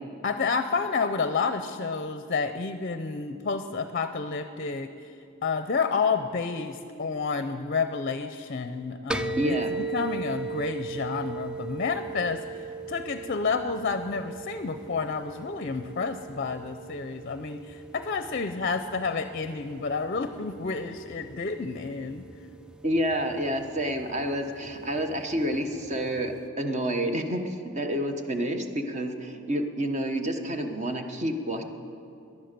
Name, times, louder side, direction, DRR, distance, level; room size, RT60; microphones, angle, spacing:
voice 1, 0.2-5.1 5.4-22.2, left 4 dB, 45° left, 9 dB, 0.6 m, -30 dB
sound 1, 9.1-26.5, right 4 dB, 5° right, 0.3 m, -39 dB
voice 2, 9.4-9.7 22.8-31.6, equal, 35° right, 5 dB, 1.2 m, -29 dB
19.0 x 11.0 x 6.8 m, 2.6 s
head